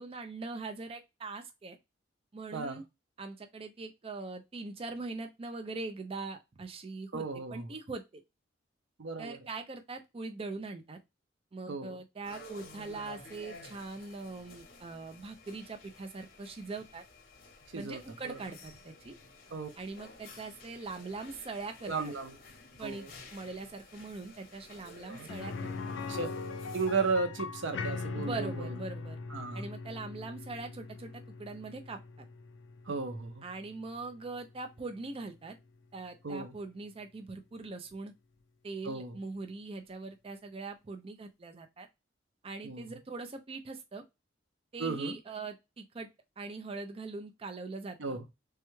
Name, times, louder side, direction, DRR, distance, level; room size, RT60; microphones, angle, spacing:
voice 1, 0.0-1.8 2.3-2.8 3.2-7.2 7.5-8.2 9.2-11.0 11.5-17.0 17.7-19.1 19.8-22.1 22.8-23.0 23.3-25.9 28.2-29.2 29.5-32.0 33.4-35.6 35.9-38.1 38.6-41.9 42.4-44.0 44.7-46.1 46.4-48.2, right 3 dB, 30° right, 0.4 m, -42 dB
voice 2, 2.5-2.8 7.1-7.7 9.0-9.4 11.7-12.0 17.7-18.4 19.5-19.7 21.9-22.3 22.8-23.1 25.1-25.3 26.1-26.3 26.7-28.7 29.3-29.7 32.9-33.4 36.2-36.5 38.8-39.2 42.6-42.9 44.8-45.2 48.0-48.2, right 4 dB, 75° right, 0.6 m, -35 dB
sound 1, 12.2-27.1, left 2 dB, 50° left, 0.9 m, -53 dB
sound 2, 25.3-35.1 35.4-35.5 37.9-38.0, left 4 dB, 75° left, 0.4 m, -41 dB
3.3 x 2.2 x 3.0 m
head